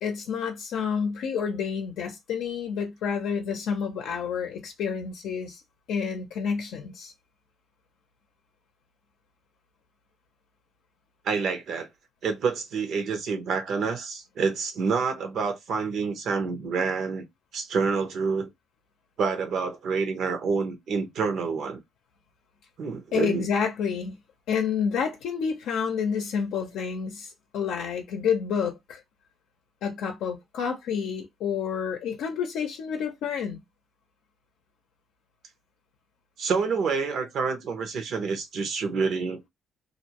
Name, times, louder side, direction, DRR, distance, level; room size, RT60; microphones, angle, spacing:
voice 1, 0.0-5.6 5.9-7.1 23.1-24.2 24.5-29.0 29.8-33.6, left 6 dB, 85° left, 0.5 m, -29 dB
voice 2, 11.2-11.9 12.2-17.2 17.5-18.5 19.2-21.8 22.8-23.5 36.4-39.5, right 5 dB, 70° right, 0.8 m, -28 dB
2.5 x 2.1 x 2.8 m
cardioid pair, 100°, 0 cm